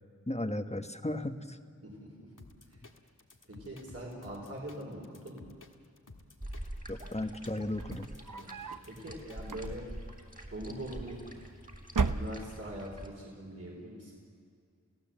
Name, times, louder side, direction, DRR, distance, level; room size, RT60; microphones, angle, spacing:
voice 1, 0.3-1.6 6.9-8.1, left 1 dB, 20° left, 7 dB, 1.3 m, -35 dB
voice 2, 1.8-2.3 2.7-2.8 3.5-5.4 8.3-9.9 10.5-11.2 12.1-14.1, right 1 dB, 50° right, -2 dB, 4.6 m, -43 dB
sound 1, 2.4-9.7, left 2 dB, 85° left, 1.7 m, -54 dB
sound 2, 6.4-13.1, right 1 dB, 25° right, 3.5 m, -46 dB
sound 3, 7.7-8.9 9.4-10.1 11.0-11.5 11.9-12.8, right 4 dB, 85° right, 0.8 m, -34 dB
30.0 x 16.5 x 7.7 m, 2.4 s
wide cardioid pair, 40°, 31 cm